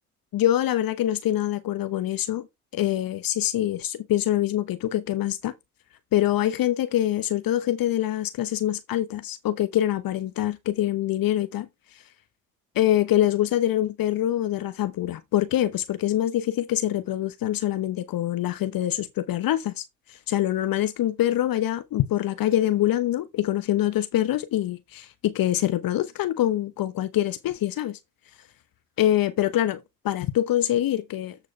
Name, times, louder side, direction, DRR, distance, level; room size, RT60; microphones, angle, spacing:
voice 1, 0.3-2.5 2.7-5.5 6.1-11.7 12.7-28.0 29.0-31.4, left 13 dB, 45° left, 1.0 m, -25 dB
14.0 x 4.9 x 3.3 m
hypercardioid pair, 60°, 48 cm